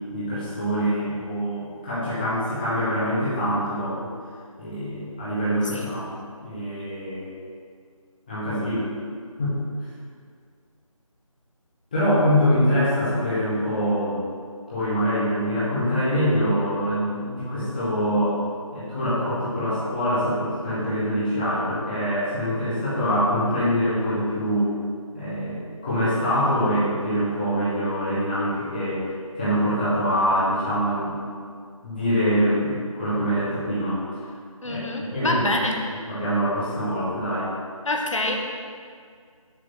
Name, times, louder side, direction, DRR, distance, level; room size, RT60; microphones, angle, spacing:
voice 1, 0.1-4.1 4.6-6.2 6.4-7.3 8.3-8.9 9.4-9.6 11.9-14.2 14.7-18.4 18.7-24.7 25.1-29.0 29.3-31.2 31.8-34.3 34.6-35.6 36.1-37.5, equal, 15° left, -12 dB, 1.4 m, -24 dB
voice 2, 34.6-35.8 37.8-38.4, left 2 dB, 60° left, 1 dB, 1.1 m, -26 dB
6.9 x 3.4 x 6.0 m, 2.1 s
figure-of-eight pair, 170°, 18 cm